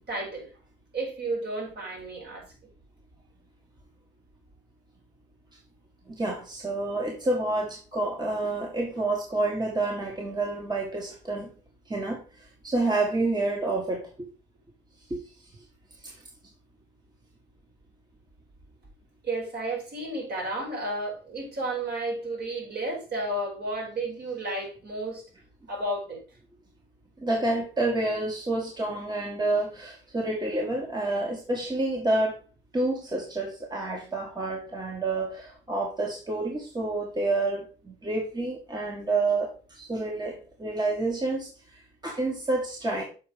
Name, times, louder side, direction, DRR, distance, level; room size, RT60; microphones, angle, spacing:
voice 1, 0.1-0.5 0.9-2.5 19.2-25.2 25.7-26.2, right 2 dB, 55° right, 4.6 m, -32 dB
voice 2, 6.1-11.5 11.9-14.3 15.1-15.2 16.0-16.2 27.2-32.3 32.7-43.0, right 2 dB, 20° right, 1.6 m, -29 dB
6.7 x 4.5 x 5.1 m
cardioid pair, 90°, 20 cm